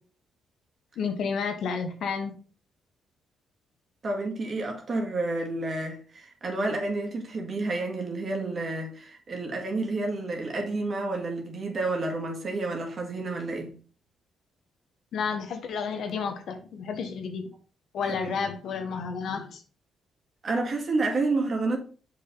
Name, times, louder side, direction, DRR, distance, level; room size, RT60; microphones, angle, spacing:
voice 1, 1.0-2.3 15.1-17.4 17.9-19.6, left 5 dB, 70° left, 1.4 m, -31 dB
voice 2, 4.0-13.7 18.0-18.3 20.4-21.8, right 2 dB, 40° right, 2.2 m, -30 dB
6.7 x 5.4 x 4.0 m
cardioid pair, 105°, 0 cm